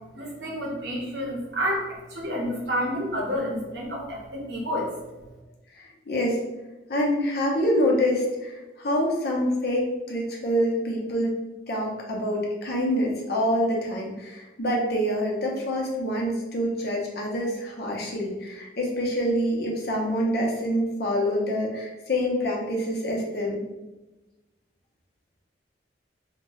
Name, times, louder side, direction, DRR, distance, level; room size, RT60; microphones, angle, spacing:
voice 1, 0.1-4.9, equal, 65° right, -2 dB, 0.8 m, -29 dB
voice 2, 5.7-6.4 6.9-11.3 11.7-23.6, equal, 55° left, -2 dB, 0.6 m, -26 dB
2.6 x 2.2 x 3.0 m, 1.1 s
head